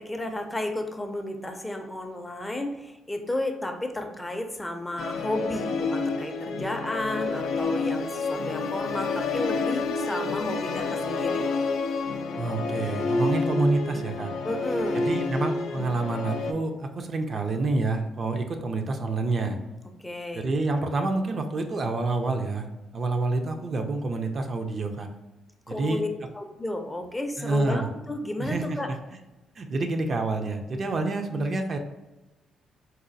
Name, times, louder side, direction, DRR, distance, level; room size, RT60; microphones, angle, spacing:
voice 1, 0.0-11.4 14.4-15.1 20.0-20.5 25.7-26.1 26.3-28.9, left 1 dB, 15° left, 5 dB, 0.4 m, -32 dB
Musical instrument, 5.0-16.5, left 3 dB, 80° left, 0.3 m, -29 dB
voice 2, 12.4-14.3 14.9-19.6 20.3-22.7 22.9-25.1 25.7-26.0 27.4-27.9 28.4-29.0 29.6-31.8, right 2 dB, 45° right, 5 dB, 0.4 m, -28 dB
4.0 x 2.2 x 2.5 m, 1.1 s
cardioid pair, 90°, 0 cm